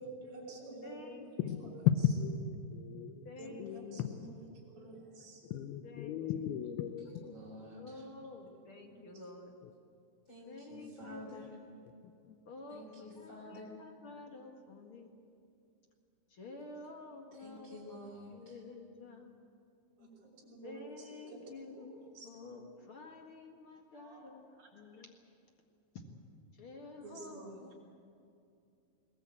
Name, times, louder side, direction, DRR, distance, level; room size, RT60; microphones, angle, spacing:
voice 1, 0.0-1.3 1.6-1.7 3.4-5.5 8.9-9.2 20.0-21.4 21.7-22.3 24.0-24.7 27.0-27.6, right 2 dB, 30° right, -4 dB, 6.3 m, -50 dB
voice 2, 0.8-1.2 3.2-3.7 5.8-6.2 7.7-9.6 10.5-11.5 12.4-12.9 13.2-15.1 16.3-18.0 18.3-19.3 20.6-25.1 25.9-26.0 26.6-27.8, left 3 dB, 55° left, 2 dB, 1.5 m, -50 dB
voice 3, 1.4-1.7 2.2-3.3 3.6-4.3 5.5-7.3 12.3-12.4, left 6 dB, 75° left, 8 dB, 2.4 m, -39 dB
voice 4, 7.2-8.1 10.3-11.6 12.7-13.7 17.3-18.6, left 1 dB, 30° left, -3 dB, 3.5 m, -50 dB
21.5 x 19.5 x 8.5 m, 2.5 s
omnidirectional pair, 5.2 m